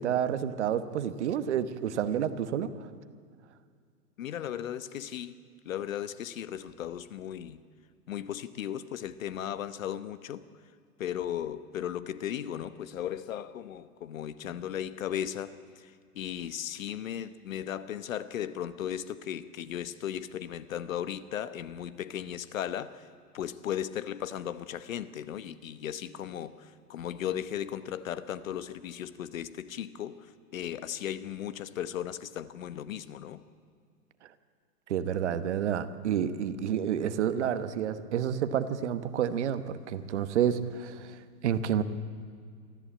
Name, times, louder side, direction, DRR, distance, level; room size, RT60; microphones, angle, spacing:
voice 1, 0.0-2.7 34.9-41.2 41.4-41.8, right 9 dB, 45° right, 11 dB, 1.2 m, -29 dB
voice 2, 4.2-5.4 5.6-7.6 8.1-10.4 11.0-23.1 23.3-33.4, left 10 dB, 55° left, 14 dB, 1.1 m, -36 dB
24.0 x 14.5 x 8.6 m, 2.1 s
hypercardioid pair, 165°, 48 cm